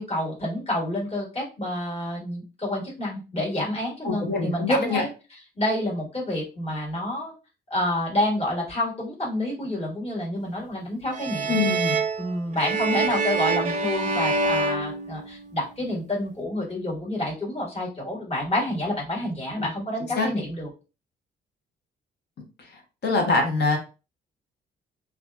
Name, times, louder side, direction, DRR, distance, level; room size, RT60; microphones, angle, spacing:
voice 1, 0.0-7.3 7.7-11.6 12.2-20.7, left 1 dB, 30° left, -4 dB, 1.5 m, -28 dB
voice 2, 4.0-5.0 11.5-12.0 20.2-20.3 23.0-23.8, left 3 dB, 60° left, 3 dB, 1.0 m, -23 dB
sound 1, 11.1-15.7, right 3 dB, 40° right, 0.5 m, -26 dB
2.6 x 2.3 x 2.2 m, 0.31 s
cardioid pair, 90°, 20 cm